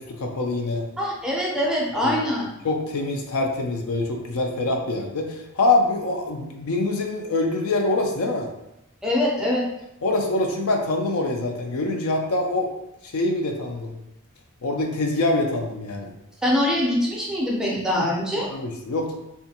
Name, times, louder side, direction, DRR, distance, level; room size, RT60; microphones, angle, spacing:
voice 1, 0.0-0.9 2.0-2.2 2.6-8.5 10.0-12.7 13.0-13.9 14.6-16.1 17.9-18.1 18.5-19.1, left 2 dB, 75° left, 2 dB, 0.5 m, -25 dB
voice 2, 1.0-2.5 9.0-9.7 16.4-18.5, left 1 dB, 5° right, -4 dB, 0.5 m, -23 dB
2.5 x 2.4 x 2.7 m, 0.86 s
head